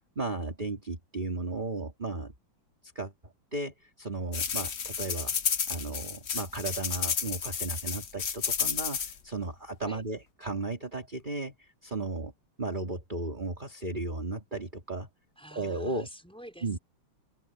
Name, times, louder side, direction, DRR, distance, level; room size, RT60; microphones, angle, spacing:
voice 1, 0.1-2.3 2.9-5.3 5.7-12.3 12.6-15.1 15.5-16.1 16.6-16.8, right 2 dB, 20° right, 3.1 m, -35 dB
sound 1, 4.3-9.1, left 7 dB, 45° left, 0.9 m, -31 dB
voice 2, 15.4-16.8, equal, ahead, 5.4 m, -48 dB
omnidirectional pair, 2.4 m